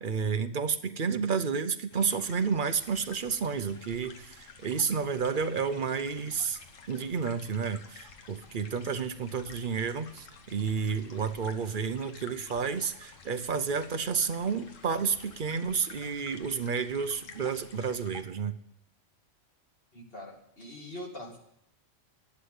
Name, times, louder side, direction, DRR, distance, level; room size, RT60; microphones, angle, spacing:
voice 1, 0.0-6.6 6.9-18.5, right 6 dB, 50° right, 10 dB, 0.8 m, -31 dB
sound 1, 1.9-18.2, left 5 dB, 85° left, 1.6 m, -51 dB
voice 2, 19.9-21.4, left 1 dB, 50° left, 0 dB, 2.7 m, -43 dB
11.5 x 8.1 x 9.6 m, 0.77 s
omnidirectional pair, 1.3 m